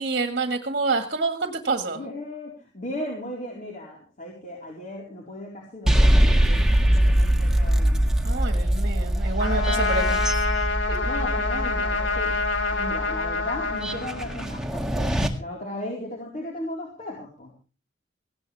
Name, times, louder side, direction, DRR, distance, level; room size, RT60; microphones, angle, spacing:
voice 1, 0.0-2.0 8.2-10.2 10.9-11.0, right 3 dB, 50° right, 6 dB, 1.8 m, -27 dB
voice 2, 1.9-8.9 9.5-9.9 11.0-15.1 15.4-17.5, left 1 dB, 40° left, -2 dB, 4.3 m, -36 dB
sound 1, 5.9-15.3, right 1 dB, 5° right, 1.8 m, -23 dB
Trumpet, 9.4-14.7, left 3 dB, 85° left, 2.9 m, -27 dB
18.5 x 16.5 x 3.4 m, 0.35 s
head